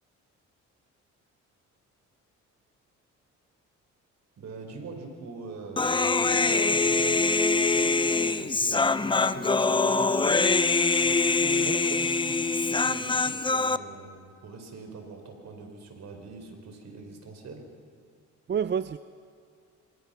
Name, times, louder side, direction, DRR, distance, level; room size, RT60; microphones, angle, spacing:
voice 1, 4.4-8.9 9.2-10.5 11.0-17.6, right 3 dB, 60° right, 4 dB, 5.1 m, -43 dB
Human voice, 5.8-13.8, left 3 dB, 15° left, 0.7 m, -24 dB
voice 2, 11.7-12.0 18.5-19.0, right 7 dB, 35° right, 13 dB, 0.6 m, -29 dB
26.5 x 25.5 x 5.9 m, 2.3 s
cardioid pair, 90°, 30 cm